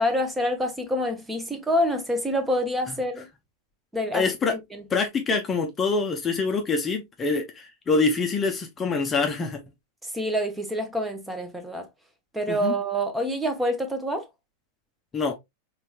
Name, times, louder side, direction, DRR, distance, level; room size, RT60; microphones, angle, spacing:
voice 1, 0.0-3.3 3.9-4.8 10.0-11.9 12.3-14.3, equal, 10° right, 0.9 m, -27 dB
voice 2, 4.1-4.5 4.9-9.6 12.5-12.7 15.1-15.4, left 4 dB, 20° left, 0.7 m, -25 dB
4.3 x 3.2 x 2.3 m
figure-of-eight pair, 90°, 0 cm